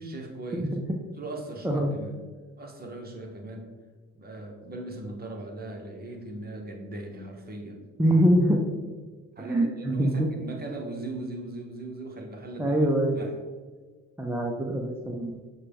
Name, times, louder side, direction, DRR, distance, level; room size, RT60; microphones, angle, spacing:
voice 1, 0.0-0.7 1.2-2.2 2.6-3.7 4.1-7.8 9.4-12.8 13.1-13.3, right 2 dB, 30° right, 2 dB, 0.9 m, -39 dB
voice 2, 8.0-8.6 9.4-10.1 12.6-13.2 14.2-15.4, right 1 dB, 10° right, 0 dB, 0.5 m, -24 dB
6.4 x 2.2 x 3.4 m, 1.4 s
supercardioid pair, 70°, 29 cm